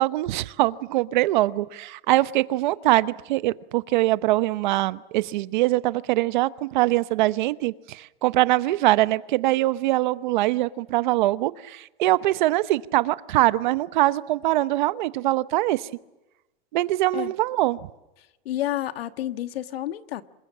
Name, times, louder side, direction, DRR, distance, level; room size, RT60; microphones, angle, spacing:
voice 1, 0.0-15.9 16.7-17.8, right 17 dB, 55° right, 15 dB, 1.0 m, -23 dB
voice 2, 18.4-20.2, left 13 dB, 85° left, 10 dB, 1.5 m, -30 dB
28.0 x 21.0 x 7.4 m, 0.99 s
supercardioid pair, 170°, 29 cm